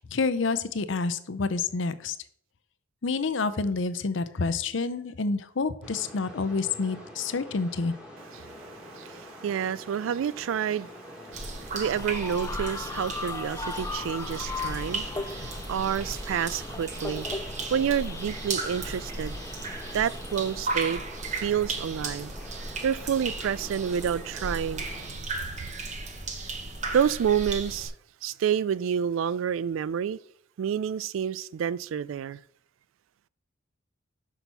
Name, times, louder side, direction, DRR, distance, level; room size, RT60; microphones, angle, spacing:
voice 1, 0.0-2.2 3.0-7.9, left 4 dB, 70° left, 0.6 m, -28 dB
sound 1, 5.8-25.1, equal, 5° right, 1.7 m, -46 dB
voice 2, 8.4-10.9 11.3-17.4 17.7-19.3 19.9-21.0 21.3-22.3 22.8-25.3 26.9-27.9 28.2-30.2 30.6-32.4, right 8 dB, 85° right, 0.3 m, -29 dB
sound 2, 11.3-27.9, right 3 dB, 35° right, 0.9 m, -36 dB
sound 3, 11.8-20.6, left 4 dB, 15° left, 0.3 m, -38 dB
6.1 x 5.8 x 5.4 m
head